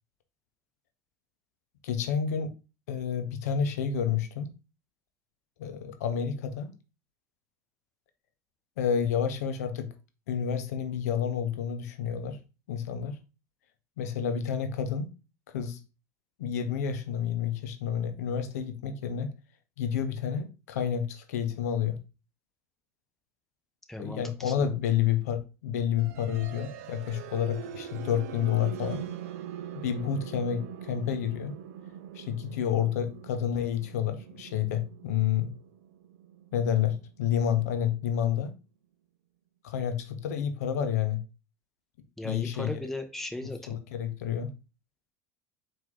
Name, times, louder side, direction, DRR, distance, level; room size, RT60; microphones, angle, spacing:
voice 1, 1.8-2.5 2.9-4.5 5.6-6.7 8.8-9.9 10.3-12.4 12.7-13.2 14.0-15.1 15.5-15.8 16.4-19.3 19.8-22.0 24.0-29.0 29.7-31.5 32.1-35.5 36.5-38.5 39.6-41.2 42.2-42.8 43.7-44.5, left 8 dB, 80° left, 0.5 m, -29 dB
voice 2, 23.9-24.7 42.2-43.8, left 1 dB, 5° left, 0.8 m, -37 dB
sound 1, 26.0-37.9, right 9 dB, 75° right, 0.5 m, -43 dB
4.4 x 2.6 x 3.5 m
hypercardioid pair, 80°, 9 cm